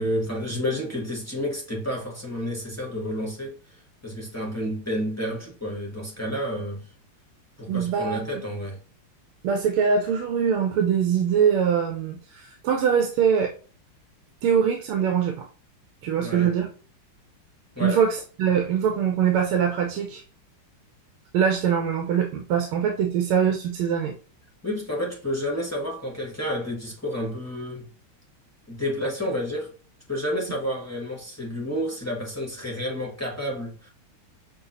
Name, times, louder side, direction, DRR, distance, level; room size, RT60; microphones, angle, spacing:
voice 1, 0.0-6.9 7.6-8.8 16.2-16.5 17.7-18.0 24.6-27.9 28.7-29.7 30.1-33.9, equal, 25° left, 0.3 m, -30 dB
voice 2, 7.7-8.2 9.4-13.5 14.4-15.5 16.0-16.7 17.8-20.2 21.3-24.1, right 7 dB, 85° right, 1.6 m, -23 dB
6.9 x 2.4 x 2.6 m
omnidirectional pair, 2.4 m